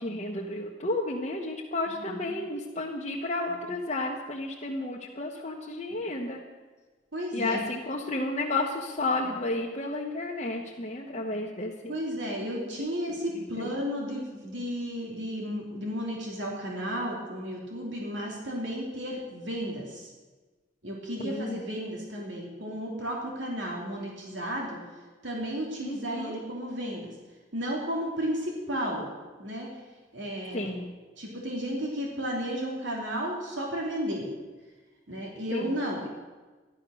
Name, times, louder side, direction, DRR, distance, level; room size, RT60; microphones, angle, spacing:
voice 1, 0.0-6.4 7.3-11.9 13.6-13.7 21.2-21.6 25.8-26.4 30.5-30.9 35.5-35.8, left 2 dB, 35° left, -3 dB, 1.3 m, -32 dB
voice 2, 1.9-2.4 7.1-7.6 11.9-20.1 20.8-24.8 25.2-27.1 27.5-29.0 29.4-29.7 30.1-30.7 31.2-34.3 35.1-36.1, equal, 70° right, -1 dB, 2.9 m, -33 dB
14.0 x 11.5 x 6.4 m, 1.3 s
head